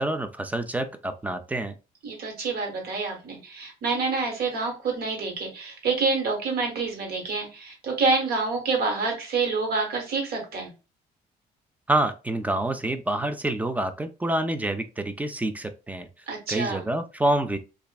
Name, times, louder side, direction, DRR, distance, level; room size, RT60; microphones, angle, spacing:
voice 1, 0.0-1.7 11.9-16.1 16.5-17.6, right 1 dB, 10° right, 0.3 m, -27 dB
voice 2, 2.0-10.7 16.3-16.9, right 4 dB, 65° right, 1.4 m, -27 dB
3.1 x 2.4 x 2.2 m
cardioid pair, 110°, 17 cm